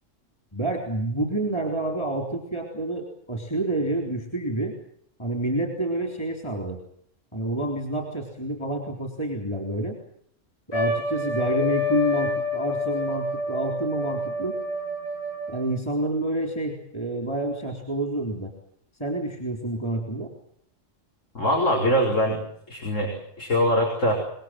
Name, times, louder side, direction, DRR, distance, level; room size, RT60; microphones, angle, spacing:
voice 1, 0.5-4.7 5.2-6.8 7.3-10.0 10.7-14.5 15.5-18.5 19.0-20.3, right 1 dB, 20° left, 3 dB, 4.0 m, -28 dB
Trumpet, 10.7-15.7, left 2 dB, 55° left, 7.8 m, -28 dB
voice 2, 21.4-22.4 22.7-24.1, equal, 80° left, 0 dB, 5.3 m, -23 dB
25.5 x 21.5 x 7.7 m, 0.70 s
omnidirectional pair, 1.3 m